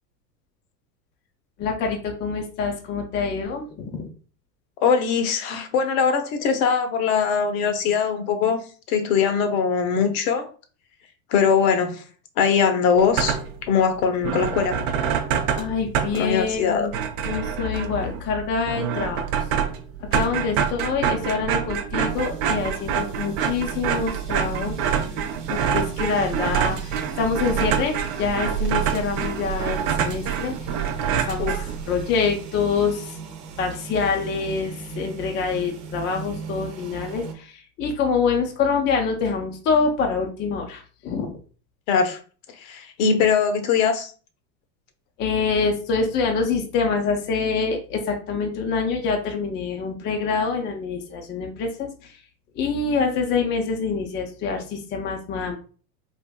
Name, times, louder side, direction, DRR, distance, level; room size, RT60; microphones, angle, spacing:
voice 1, 1.6-4.1 15.6-16.9 17.2-19.3 20.0-24.8 25.5-30.5 31.3-31.6 31.8-33.2 33.6-41.4 45.2-52.1 52.6-55.6, left 5 dB, 25° left, 3 dB, 0.4 m, -25 dB
voice 2, 4.8-8.6 8.9-10.5 11.3-12.0 12.4-14.8 16.1-16.9 31.4-31.5 41.9-42.2 42.5-44.1, left 6 dB, 60° left, 7 dB, 0.7 m, -21 dB
sound 1, 13.0-13.7 14.0-14.1 14.2-32.1, right 8 dB, 45° right, 0.4 m, -26 dB
sound 2, 22.0-37.3, right 5 dB, 80° right, 0.9 m, -39 dB
3.5 x 2.5 x 2.2 m, 0.39 s
supercardioid pair, 115°, 47 cm